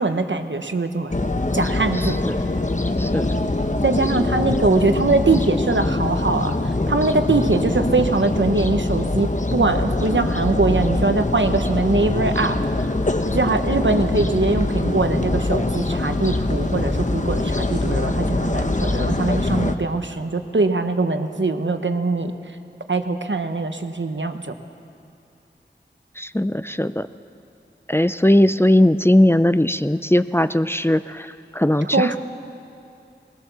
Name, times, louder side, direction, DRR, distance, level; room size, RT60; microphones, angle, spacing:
voice 1, 0.0-2.2 3.8-12.6 13.3-22.3 22.9-24.5 31.9-32.2, right 3 dB, 80° right, 7 dB, 1.1 m, -22 dB
sound 1, 1.1-19.7, left 2 dB, 40° left, 1.0 m, -23 dB
voice 2, 2.0-2.5 3.0-3.3 26.2-27.1 27.9-32.2, left 1 dB, 10° left, 12 dB, 0.5 m, -19 dB
20.0 x 19.5 x 6.9 m, 2.6 s
wide cardioid pair, 45°, 19 cm